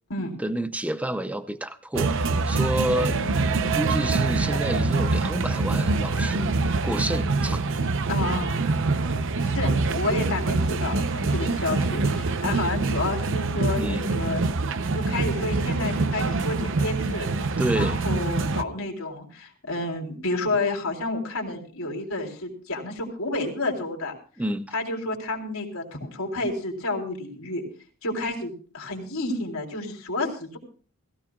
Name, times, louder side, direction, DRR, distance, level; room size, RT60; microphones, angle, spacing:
voice 1, 0.4-2.1 2.4-3.2 3.7-6.5 6.8-7.6 13.8-14.1 17.6-18.0 24.4-24.7, right 1 dB, 5° right, 11 dB, 0.6 m, -29 dB
sound 1, 1.9-18.6, right 3 dB, 60° right, 0.8 m, -25 dB
voice 2, 3.0-3.4 8.1-8.7 9.4-14.4 14.9-17.3 17.7-24.1 24.7-27.6 28.0-30.6, left 2 dB, 70° left, 1 dB, 3.7 m, -30 dB
21.0 x 16.0 x 2.4 m, 0.40 s
head